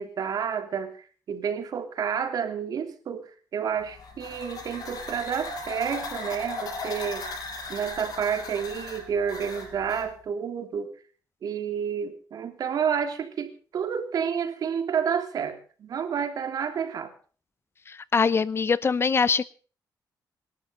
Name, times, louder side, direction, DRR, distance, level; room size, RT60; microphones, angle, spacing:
voice 1, 0.0-7.3 7.7-10.9 11.4-17.1, right 7 dB, 65° right, 7 dB, 3.3 m, -30 dB
sound 1, 3.8-10.1, left 3 dB, 65° left, 6.9 m, -37 dB
voice 2, 17.9-19.4, left 5 dB, 35° left, 19 dB, 0.7 m, -23 dB
27.0 x 12.0 x 3.8 m, 0.40 s
cardioid pair, 110°, 7 cm